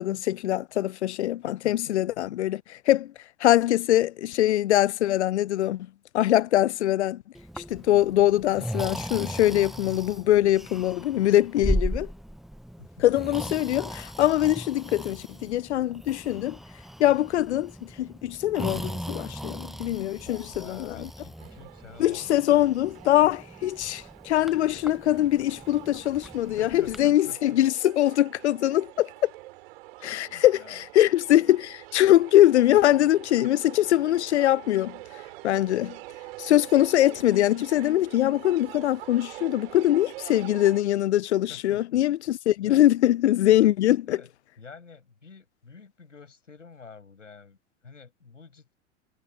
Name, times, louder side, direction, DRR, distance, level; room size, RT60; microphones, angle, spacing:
voice 1, 0.0-3.1 3.4-5.9 6.1-7.2 7.6-12.1 13.0-16.6 17.0-21.1 22.0-29.3 30.0-35.0 35.4-36.0 36.4-44.2, left 13 dB, 60° left, 0.7 m, -23 dB
voice 2, 1.4-2.0 12.8-13.1 20.2-23.0 26.6-27.6 30.0-30.8 41.5-42.0 42.6-42.9 43.8-44.3 44.6-48.7, left 5 dB, 80° left, 7.4 m, -49 dB
Breathing, 7.3-27.0, equal, ahead, 0.9 m, -37 dB
sound 1, 21.4-40.8, right 20 dB, 50° right, 4.2 m, -45 dB
figure-of-eight pair, 90°, 37 cm